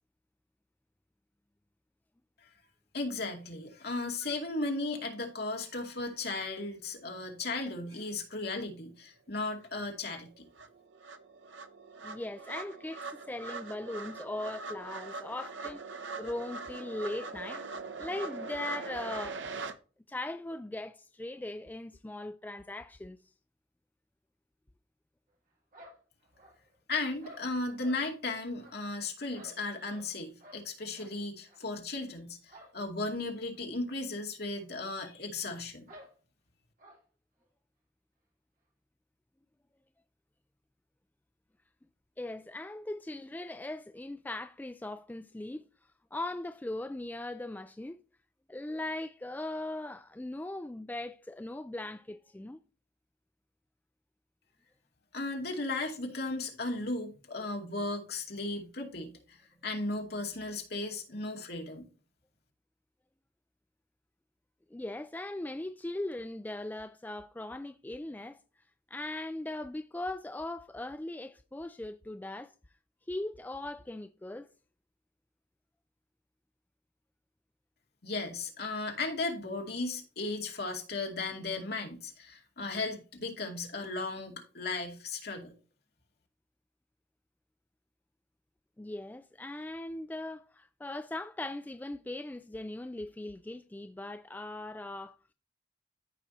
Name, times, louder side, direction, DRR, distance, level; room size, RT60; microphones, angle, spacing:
voice 1, 2.9-10.5 26.9-35.9 55.1-59.4 59.6-61.8 78.0-85.5, left 2 dB, 55° left, 2.3 m, -36 dB
sound 1, 9.6-9.7 10.1-19.7, right 3 dB, 75° right, 0.8 m, -42 dB
voice 2, 12.0-15.8 16.2-17.6 18.0-19.4 20.1-23.2 42.2-45.6 46.1-48.0 48.5-52.6 64.7-68.4 68.9-72.5 73.1-74.5 88.8-95.2, left 2 dB, 10° left, 0.3 m, -39 dB
sound 2, 25.7-26.8 27.2-28.0 28.6-30.1 30.4-30.6 30.9-31.1 31.5-31.6 32.5-32.8 33.0-33.1 33.5-33.6 34.5-34.6 34.8-34.9 35.9-36.1 36.8-37.0, equal, 45° right, 2.7 m, -54 dB
14.0 x 4.9 x 2.8 m
head